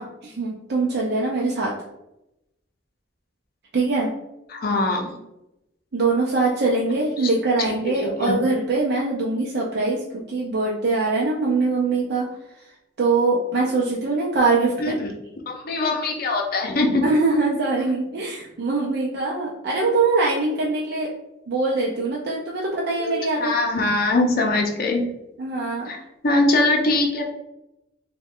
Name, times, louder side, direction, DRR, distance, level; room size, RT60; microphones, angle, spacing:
voice 1, 0.0-1.7 3.7-4.1 5.9-12.3 12.6-12.7 13.0-15.0 17.0-21.1 21.5-23.5 25.4-25.9, right 3 dB, 60° right, -3 dB, 0.5 m, -23 dB
voice 2, 4.5-5.1 8.0-8.3 14.8-15.1 15.5-17.0 23.0-23.1 23.4-25.0 25.9-26.0 26.2-27.3, left 2 dB, 55° left, 2 dB, 0.6 m, -22 dB
3.1 x 2.2 x 3.5 m, 0.89 s
head